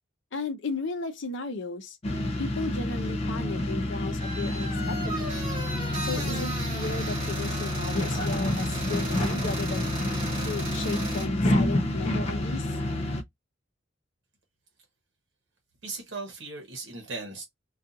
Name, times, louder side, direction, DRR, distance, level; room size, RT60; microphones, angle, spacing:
voice 1, 0.3-2.0 2.4-5.4 6.0-9.9 10.5-12.7, left 3 dB, 70° left, 0.6 m, -35 dB
sound 1, 2.0-13.2, left 1 dB, 30° left, 0.4 m, -28 dB
sound 2, 4.2-11.2, right 1 dB, 25° right, 1.3 m, -36 dB
voice 2, 15.8-17.4, right 3 dB, 65° right, 0.9 m, -37 dB
2.4 x 2.4 x 2.6 m
head